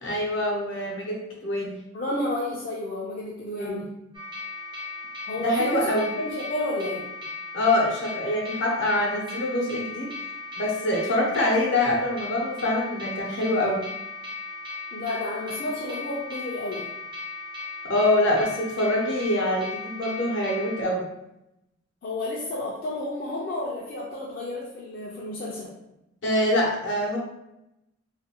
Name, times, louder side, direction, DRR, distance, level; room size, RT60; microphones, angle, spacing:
voice 1, 0.0-1.8 3.6-3.8 5.4-6.1 7.5-10.1 10.6-13.8 17.8-21.0 26.2-27.2, left 1 dB, 65° left, -2 dB, 0.8 m, -25 dB
voice 2, 1.9-3.9 5.3-7.1 14.9-16.9 22.0-25.7, left 2 dB, 45° left, -5 dB, 0.4 m, -31 dB
sound 1, 4.1-20.8, left 3 dB, 25° right, 0.4 m, -37 dB
2.6 x 2.5 x 2.8 m, 0.88 s
head